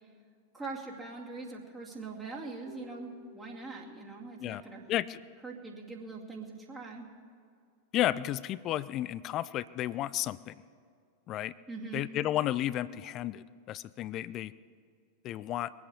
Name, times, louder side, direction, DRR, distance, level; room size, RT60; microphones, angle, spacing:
voice 1, 0.5-4.8 5.4-7.1 11.7-12.1, right 3 dB, 15° right, -2 dB, 2.4 m, -42 dB
Keyboard (musical), 2.6-5.9, left 2 dB, 55° right, 3.2 m, -57 dB
voice 2, 4.9-5.2 7.9-10.5 11.3-11.5 11.9-14.5 15.2-15.7, left 13 dB, 35° left, 19 dB, 0.4 m, -32 dB
22.0 x 8.3 x 6.8 m, 2.2 s
figure-of-eight pair, 90°, 0 cm